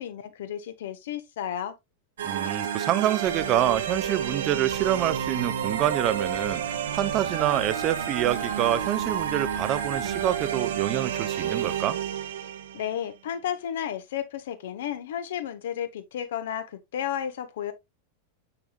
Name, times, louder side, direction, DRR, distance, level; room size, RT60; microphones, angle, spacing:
voice 1, 0.0-1.7 12.7-17.7, left 9 dB, 60° left, 1.0 m, -32 dB
voice 2, 2.2-12.0, right 11 dB, 35° right, 0.6 m, -27 dB
sound 1, 2.2-12.9, right 9 dB, 60° right, 1.1 m, -30 dB
sound 2, 3.2-10.4, left 2 dB, 80° left, 2.8 m, -46 dB
7.2 x 6.7 x 2.3 m
figure-of-eight pair, 90°, 0 cm